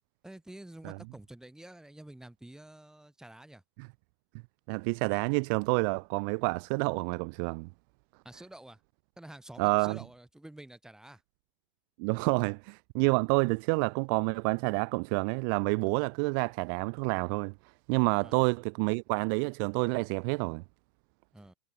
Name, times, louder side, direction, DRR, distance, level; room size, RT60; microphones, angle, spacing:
voice 1, 0.2-3.6 8.2-8.8 9.2-11.2 18.2-18.5 21.3-21.5, right 1 dB, 5° right, 7.6 m, -49 dB
voice 2, 4.7-7.7 9.6-10.0 12.0-17.5 17.9-20.6, right 39 dB, 35° right, 0.5 m, -28 dB
hypercardioid pair, 120°, 19 cm